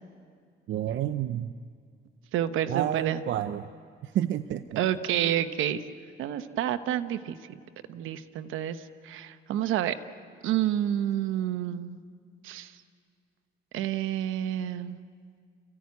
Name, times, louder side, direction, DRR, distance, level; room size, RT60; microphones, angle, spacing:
voice 1, 0.7-1.5 2.7-3.7 4.0-4.8, right 11 dB, 70° right, 10 dB, 0.7 m, -29 dB
voice 2, 2.3-3.2 4.8-5.8 6.2-7.4 7.9-9.9 10.4-12.0 12.4-12.7 13.7-15.0, right 11 dB, 90° right, 11 dB, 1.0 m, -29 dB
29.5 x 15.5 x 9.5 m, 2.1 s
cardioid pair, 90°, 20 cm